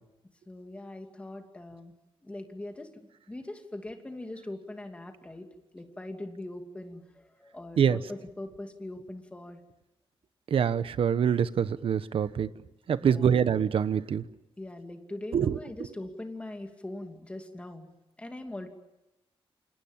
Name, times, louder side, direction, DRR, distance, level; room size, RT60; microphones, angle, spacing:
voice 1, 0.5-1.9 2.2-2.9 3.3-5.5 5.7-9.6 13.0-13.3 14.6-17.9 18.2-18.7, left 1 dB, 10° left, 4 dB, 2.7 m, -41 dB
voice 2, 10.5-12.5 12.9-14.2 15.3-15.6, right 8 dB, 70° right, 14 dB, 1.1 m, -25 dB
29.0 x 26.5 x 7.4 m, 0.96 s
wide cardioid pair, 175°, 10 cm